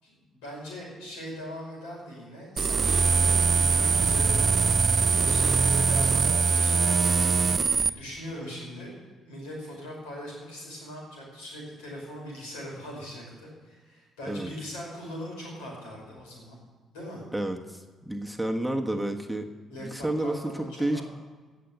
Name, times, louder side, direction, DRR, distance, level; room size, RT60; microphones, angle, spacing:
voice 1, 0.0-4.8 5.0-7.0 7.7-8.9 9.3-16.6 16.9-17.2 19.7-21.0, equal, 80° left, -2 dB, 5.4 m, -40 dB
sound 1, 2.6-7.9, right 5 dB, 40° right, 0.5 m, -22 dB
voice 2, 17.3-19.5 19.8-21.0, right 1 dB, ahead, 3 dB, 1.4 m, -30 dB
17.0 x 7.0 x 8.1 m, 1.4 s
hypercardioid pair, 45°, 0 cm